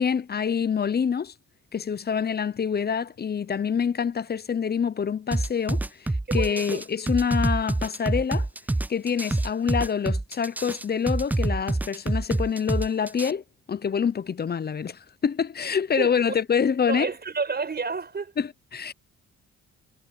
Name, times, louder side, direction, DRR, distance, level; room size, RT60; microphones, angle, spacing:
voice 1, 0.0-1.3 1.7-8.5 8.9-13.4 13.7-17.1 18.4-18.9, left 7 dB, 35° left, 0.7 m, -26 dB
sound 1, 5.3-13.3, right 2 dB, 5° right, 0.3 m, -26 dB
voice 2, 6.3-6.9 16.0-16.4 16.9-18.3, right 4 dB, 35° right, 5.5 m, -30 dB
cardioid pair, 90°, 30 cm